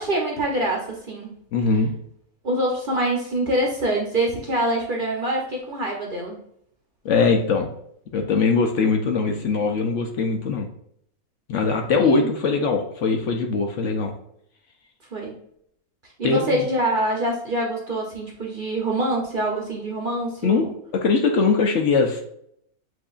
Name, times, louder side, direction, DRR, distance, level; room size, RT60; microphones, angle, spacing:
voice 1, 0.0-1.4 2.4-6.4 12.0-12.3 15.1-15.4 16.2-20.7, right 1 dB, 45° right, -1 dB, 0.8 m, -25 dB
voice 2, 1.5-1.9 7.0-7.7 8.1-10.7 11.5-14.1 16.2-16.6 20.4-20.7 20.9-22.2, left 4 dB, 65° left, 3 dB, 0.9 m, -21 dB
7.6 x 2.6 x 2.4 m, 0.71 s
omnidirectional pair, 1.5 m